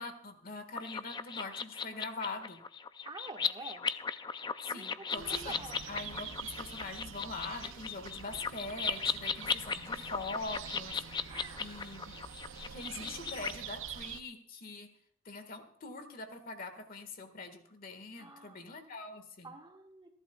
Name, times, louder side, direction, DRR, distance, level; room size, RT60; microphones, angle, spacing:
voice 1, 0.0-2.6 4.6-11.0 11.3-12.2 12.6-14.9 15.2-19.5, left 3 dB, 45° left, 8 dB, 1.6 m, -43 dB
sound 1, 0.8-13.5, left 6 dB, 25° left, 0.4 m, -37 dB
voice 2, 3.0-3.9 4.7-5.9 11.3-12.0 13.0-13.7 18.2-18.7 19.4-20.1, right 2 dB, 25° right, 2 dB, 1.5 m, -49 dB
sound 2, 5.2-14.2, right 8 dB, 80° right, 0.6 m, -46 dB
28.0 x 11.5 x 2.3 m, 0.66 s
head